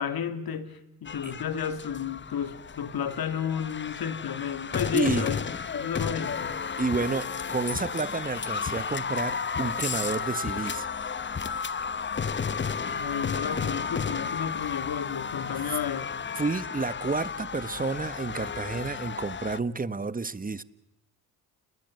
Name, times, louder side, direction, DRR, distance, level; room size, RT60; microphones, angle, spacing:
voice 1, 0.0-5.5 5.7-6.6 12.8-16.1, left 8 dB, 55° left, 2.7 m, -32 dB
sound 1, 1.1-19.6, left 6 dB, 25° left, 1.0 m, -33 dB
voice 2, 4.9-5.3 6.8-10.9 16.4-20.6, right 4 dB, 20° right, 1.4 m, -30 dB
sound 2, 8.8-13.8, equal, 80° left, 7.6 m, -49 dB
29.5 x 21.0 x 7.9 m
supercardioid pair, 65°, 42 cm